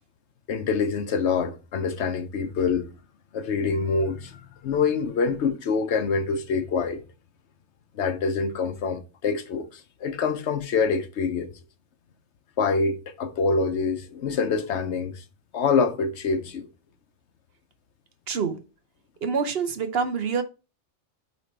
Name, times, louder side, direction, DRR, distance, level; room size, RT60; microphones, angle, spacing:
voice 1, 0.5-2.9 3.3-7.0 7.9-11.5 12.6-15.2 15.5-16.7, left 5 dB, 70° left, 1.1 m, -25 dB
voice 2, 18.3-18.6 19.2-20.4, right 5 dB, 60° right, 1.0 m, -26 dB
8.5 x 3.1 x 4.3 m
omnidirectional pair, 1.2 m